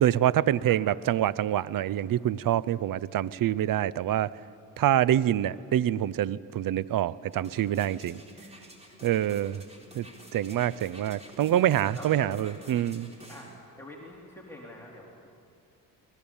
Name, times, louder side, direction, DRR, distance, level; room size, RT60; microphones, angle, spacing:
voice 1, 0.0-4.4 4.8-8.2 9.0-9.6 9.9-10.1 10.3-13.1, right 11 dB, 55° right, 20 dB, 0.7 m, -26 dB
sound 1, 7.3-13.6 14.1-14.2, equal, 15° right, 4.1 m, -50 dB
voice 2, 11.9-12.3 13.3-13.5 13.8-15.3, left 1 dB, 5° left, -3 dB, 3.8 m, -45 dB
23.0 x 19.5 x 7.2 m, 2.5 s
supercardioid pair, 75°, 42 cm